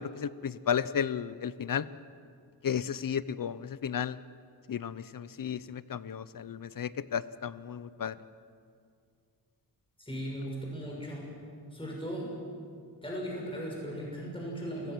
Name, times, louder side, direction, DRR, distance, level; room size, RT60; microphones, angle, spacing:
voice 1, 0.0-1.9 2.6-4.2 4.7-8.2, left 8 dB, 50° left, 16 dB, 0.7 m, -33 dB
voice 2, 10.0-11.2 11.7-12.3 13.0-14.9, equal, 10° left, -3 dB, 6.4 m, -37 dB
29.5 x 16.5 x 6.2 m, 2.3 s
wide cardioid pair, 90°, 43 cm